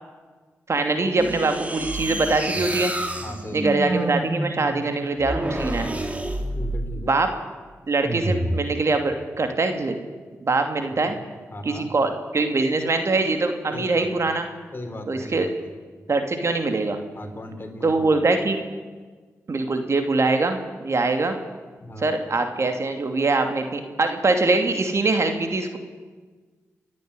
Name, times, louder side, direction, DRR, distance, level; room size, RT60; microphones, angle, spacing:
voice 1, 0.7-2.9 3.5-5.9 7.1-7.3 7.9-9.9 10.4-11.2 11.6-14.5 15.1-15.5 16.1-17.0 17.8-18.6 19.5-21.4 22.0-25.8, right 3 dB, 55° right, 6 dB, 2.7 m, -23 dB
sound 1, 1.2-7.1 8.0-8.7, right 1 dB, 25° right, 2.7 m, -28 dB
voice 2, 3.2-3.8 6.5-7.1 10.8-11.9 13.7-14.3 14.7-15.7 17.2-18.2 21.8-22.1, left 1 dB, 40° left, 5 dB, 3.7 m, -37 dB
28.5 x 10.5 x 9.8 m, 1.4 s
supercardioid pair, 45°, 6 cm